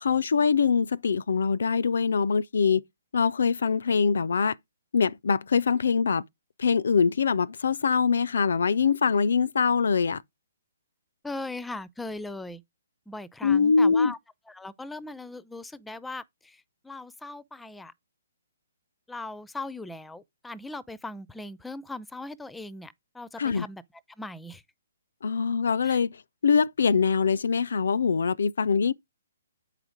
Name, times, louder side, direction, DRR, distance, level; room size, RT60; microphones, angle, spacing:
voice 1, 0.0-2.8 3.1-4.6 4.9-6.2 6.6-10.2 13.4-14.1 23.4-23.7 25.2-28.9, left 5 dB, 65° left, 0.4 m, -23 dB
voice 2, 11.2-12.6 13.1-14.2 14.5-17.9 19.1-23.8 24.2-24.6 25.8-26.0, left 2 dB, 5° left, 0.5 m, -39 dB
8.5 x 5.0 x 5.0 m
figure-of-eight pair, 130°, 0 cm